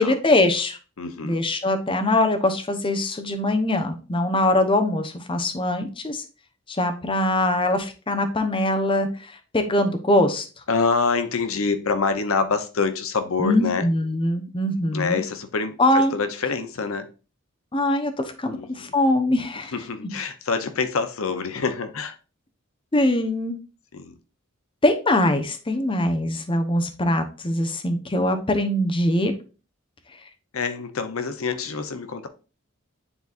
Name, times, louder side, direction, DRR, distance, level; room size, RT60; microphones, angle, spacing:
voice 1, 0.0-0.8 1.2-6.2 6.7-10.5 13.4-15.2 15.8-16.1 17.7-19.7 22.9-23.6 24.8-29.3, left 1 dB, 25° left, 6 dB, 0.8 m, -22 dB
voice 2, 1.0-1.4 10.7-13.9 14.9-17.1 18.5-18.9 19.7-22.2 23.9-24.2 30.5-32.3, left 4 dB, 80° left, 9 dB, 0.7 m, -26 dB
9.8 x 3.9 x 2.5 m, 0.34 s
head